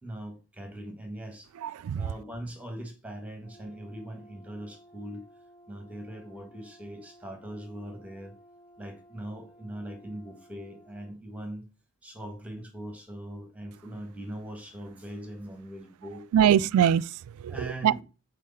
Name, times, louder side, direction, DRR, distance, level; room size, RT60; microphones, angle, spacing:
voice 1, 0.0-1.5 1.9-5.2 5.7-8.3 8.8-11.6 12.0-16.3 17.5-18.0, right 1 dB, 5° right, 1.5 m, -41 dB
voice 2, 1.6-2.1 16.3-17.9, right 9 dB, 80° right, 0.3 m, -23 dB
Brass instrument, 3.4-11.1, equal, 15° left, 2.9 m, -56 dB
6.5 x 4.1 x 5.5 m
head